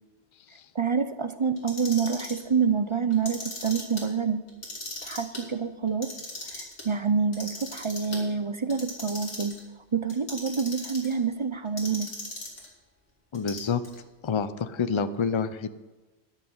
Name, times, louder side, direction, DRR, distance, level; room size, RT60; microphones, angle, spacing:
voice 1, 0.7-4.5 5.0-6.1 6.5-9.5 9.9-12.1, right 6 dB, 35° right, 11 dB, 0.5 m, -27 dB
Clock, 1.6-2.4 3.1-4.0 4.5-5.4 5.9-6.8 7.3-8.2 8.7-9.6 10.1-11.1 11.8-12.7 13.3-14.0, left 2 dB, 70° left, 3.0 m, -38 dB
voice 2, 13.3-13.8 14.2-15.7, left 6 dB, 35° left, 12 dB, 0.5 m, -28 dB
13.0 x 6.3 x 8.8 m, 1.2 s
omnidirectional pair, 1.1 m